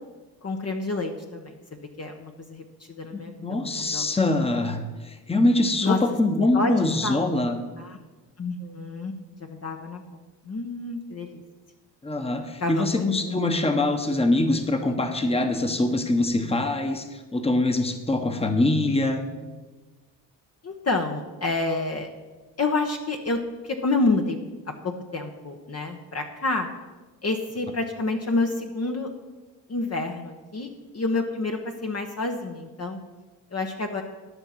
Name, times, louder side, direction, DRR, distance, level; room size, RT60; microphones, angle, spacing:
voice 1, 0.4-4.1 5.8-6.0 6.5-6.7 7.0-7.3 7.8-8.0 8.4-9.1 9.4-10.1 10.4-11.4 12.6-13.4 20.6-22.1 22.6-24.4 24.7-26.7 27.2-29.1 29.7-33.0 33.5-34.0, left 3 dB, 35° left, 3 dB, 1.1 m, -28 dB
voice 2, 3.1-7.6 12.0-19.2, left 2 dB, 15° left, 6 dB, 1.2 m, -24 dB
11.5 x 5.8 x 5.8 m, 1.2 s
supercardioid pair, 65°, 45 cm